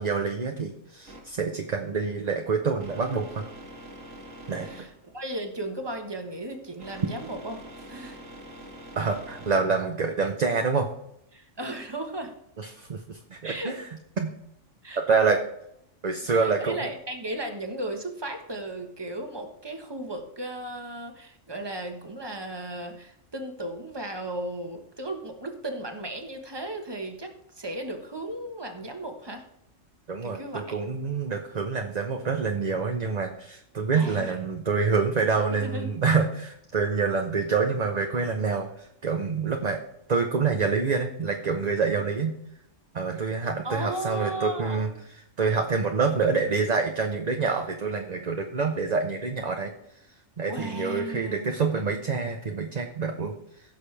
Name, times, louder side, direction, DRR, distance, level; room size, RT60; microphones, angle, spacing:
voice 1, 0.0-3.4 4.5-4.7 9.0-10.9 12.6-13.8 14.2-14.3 15.0-15.4 16.0-16.8 30.1-39.8 40.1-42.3 42.9-44.9 45.4-49.7 50.4-53.3, right 4 dB, 40° right, 4 dB, 0.8 m, -26 dB
sound 1, 1.1-10.3, right 1 dB, 80° right, 2.3 m, -46 dB
voice 2, 4.6-8.2 11.3-12.3 13.4-13.7 14.8-15.0 16.2-29.4 30.2-30.8 33.9-34.4 35.5-35.9 43.6-44.9 50.4-51.8, right 1 dB, 20° right, 4 dB, 1.3 m, -35 dB
16.0 x 6.6 x 3.4 m, 0.77 s
omnidirectional pair, 1.3 m